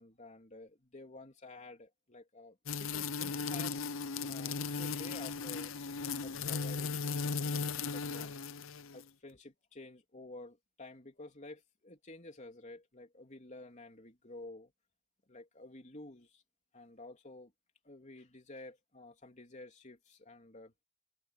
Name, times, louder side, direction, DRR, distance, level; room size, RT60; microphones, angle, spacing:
voice 1, 0.0-3.9 4.3-5.7 6.2-7.6 7.9-8.5 8.9-14.7 15.3-16.4 16.7-17.5 17.8-20.7, left 2 dB, 35° left, 3.5 m, -51 dB
sound 1, 2.7-9.0, left 5 dB, 75° left, 0.7 m, -37 dB
head